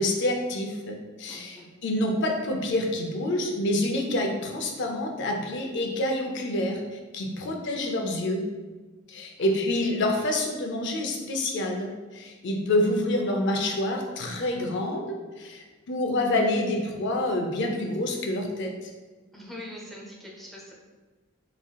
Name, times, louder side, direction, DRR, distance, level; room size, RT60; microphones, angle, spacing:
voice 1, 0.0-8.5 9.1-15.1 15.4-18.9, left 1 dB, 60° left, 2 dB, 0.5 m, -27 dB
voice 2, 1.3-1.7 7.4-7.6 7.8-7.9 9.4-9.6 19.3-20.7, left 1 dB, ahead, -4 dB, 0.6 m, -43 dB
3.6 x 3.3 x 2.3 m, 1.3 s
head